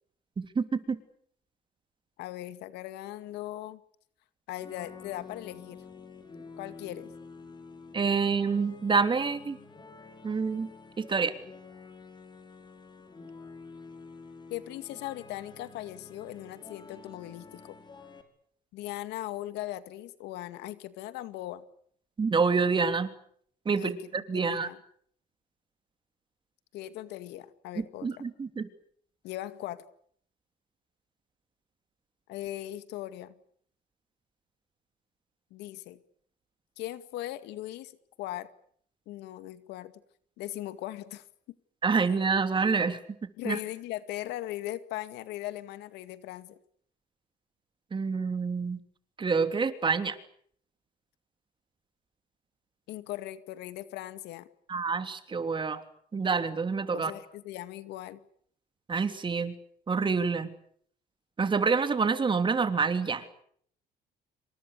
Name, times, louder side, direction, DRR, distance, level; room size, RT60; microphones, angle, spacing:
voice 1, 0.4-1.0 7.9-9.6 10.2-10.7 11.0-11.3 22.2-23.1 23.6-24.7 27.8-28.7 41.8-43.0 43.4-43.6 47.9-48.8 49.2-50.2 54.7-55.8 56.1-57.1 58.9-59.5 59.9-60.5 61.4-63.2, right 5 dB, 30° right, 9 dB, 3.2 m, -27 dB
voice 2, 2.2-3.8 4.5-5.8 6.6-7.1 14.5-17.8 18.7-21.6 23.7-24.0 24.3-24.8 26.7-28.1 29.2-29.8 32.3-33.4 35.5-36.0 36.8-38.5 39.1-39.9 40.4-41.2 43.4-46.6 52.9-54.5 56.9-58.2, left 14 dB, 85° left, 12 dB, 2.2 m, -39 dB
sound 1, 4.5-18.2, left 4 dB, 25° left, 5.5 m, -49 dB
28.0 x 25.5 x 6.8 m, 0.64 s
cardioid pair, 110°, 17 cm